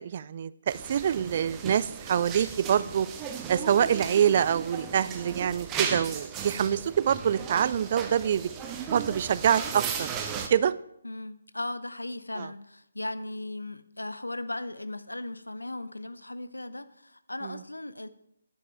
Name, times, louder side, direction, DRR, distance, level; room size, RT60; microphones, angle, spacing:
voice 1, 0.0-3.1 3.5-8.5 8.9-10.1 10.3-10.7 12.4-12.5 17.4-17.6, right 9 dB, 35° right, 0.3 m, -25 dB
sound 1, 0.7-10.5, right 7 dB, 15° right, 0.7 m, -36 dB
voice 2, 11.0-18.1, left 2 dB, 80° left, 0.6 m, -37 dB
9.7 x 7.3 x 4.4 m
figure-of-eight pair, 145°, 0 cm